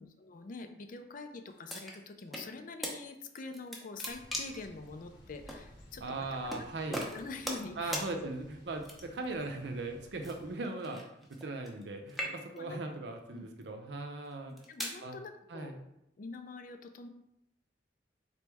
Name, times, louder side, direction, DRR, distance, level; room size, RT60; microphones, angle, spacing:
voice 1, 0.0-6.0 6.9-8.1 10.2-10.3 12.2-12.8 13.3-13.5 14.4-15.8 16.2-17.1, left 3 dB, 50° left, 7 dB, 0.4 m, -45 dB
sound 1, 1.7-2.5 2.8-3.0 3.4-4.7 5.5-5.6 6.5-6.6 6.9-7.7 7.9-8.1 8.8-9.3 10.2-11.8 12.1-12.7 13.4-13.6 14.3-15.0, equal, ahead, 0.6 m, -39 dB
Thunder / Bicycle, 4.1-10.6, equal, 85° left, 1.3 m, -56 dB
voice 2, 6.0-7.1 7.8-11.0 11.3-14.5 15.0-15.2 15.5-15.8, right 2 dB, 70° right, 5 dB, 0.6 m, -39 dB
4.1 x 3.1 x 3.4 m, 0.81 s
head